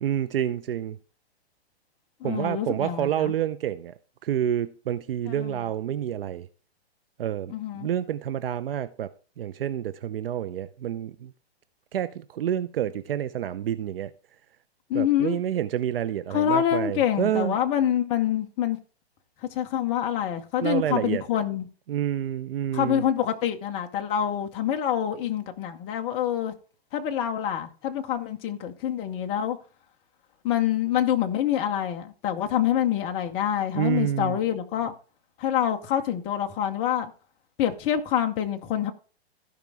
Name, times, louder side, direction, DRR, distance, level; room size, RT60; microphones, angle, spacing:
voice 1, 0.0-1.0 2.2-3.9 4.2-6.5 7.2-11.3 11.9-14.1 14.9-17.6 20.6-21.2 21.9-23.0 33.7-34.4, right 10 dB, 60° right, 0.7 m, -28 dB
voice 2, 2.2-3.3 5.3-5.6 7.5-7.9 14.9-15.4 16.3-18.8 19.5-21.7 22.7-26.5 26.9-29.6 30.4-34.9 35.4-37.1 37.6-38.9, left 10 dB, 20° left, 0.7 m, -26 dB
15.5 x 5.1 x 3.4 m
hypercardioid pair, 155°, 32 cm